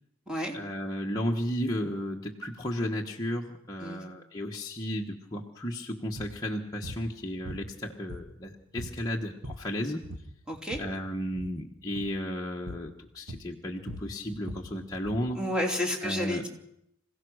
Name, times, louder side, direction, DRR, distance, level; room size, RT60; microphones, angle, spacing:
voice 1, 0.5-10.0 10.8-15.4 16.0-16.5, equal, 15° left, -2 dB, 1.3 m, -34 dB
sound 1, 6.2-6.4 6.8-7.1 7.4-8.5 8.8-9.0 9.3-9.7 10.0-10.9 11.3-11.6 11.9-12.2 12.7-12.9 13.3-15.3, equal, 70° right, 1.7 m, -41 dB
voice 2, 10.5-10.8 15.3-16.5, left 1 dB, 5° right, 1 dB, 3.2 m, -31 dB
26.5 x 16.5 x 6.4 m, 0.79 s
head